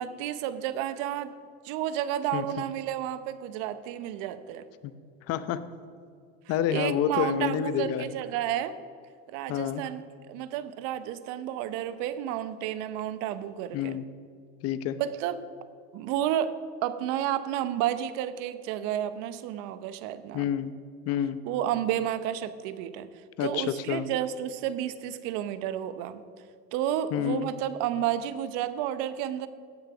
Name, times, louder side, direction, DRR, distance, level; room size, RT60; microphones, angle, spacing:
voice 1, 0.0-1.3 1.6-4.6 6.7-8.8 9.3-10.0 10.3-14.0 15.0-15.4 15.9-16.5 16.8-20.5 21.4-23.1 23.4-26.2 26.7-29.5, right 11 dB, 65° right, 13 dB, 0.9 m, -31 dB
voice 2, 5.3-5.6 6.5-8.1 9.5-9.8 13.7-14.0 14.6-15.0 20.3-20.7 21.1-21.4 23.4-24.1 27.1-27.5, left 10 dB, 50° left, 13 dB, 0.8 m, -28 dB
17.0 x 6.6 x 6.0 m, 2.2 s
supercardioid pair, 120°, 32 cm